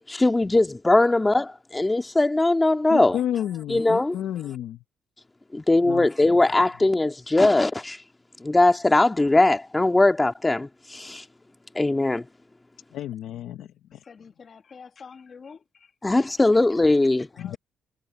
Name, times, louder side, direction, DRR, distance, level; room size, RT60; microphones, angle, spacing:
voice 1, 0.1-3.2 3.7-4.2 5.5-8.0 8.4-11.2 11.8-12.3 16.0-17.3, left 2 dB, 15° left, 1.9 m, -20 dB
voice 2, 2.9-4.8 5.9-6.0 12.9-14.0 17.4-17.6, left 11 dB, 80° left, 1.0 m, -31 dB
voice 3, 14.1-15.9 17.4-17.6, left 5 dB, 45° left, 2.0 m, -46 dB
cardioid pair, 90°, 0 cm